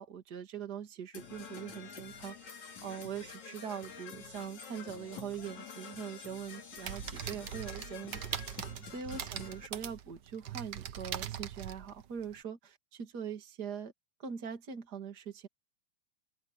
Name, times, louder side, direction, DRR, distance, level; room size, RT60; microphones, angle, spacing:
voice 1, 0.0-8.6 8.9-13.9 14.2-15.5, right 7 dB, 35° right, 2.9 m, -42 dB
Percussion / Brass instrument, 1.1-9.7, left 6 dB, 70° left, 4.5 m, -48 dB
sound 1, 6.8-12.4, right 9 dB, 70° right, 1.0 m, -41 dB
open air
omnidirectional pair, 3.4 m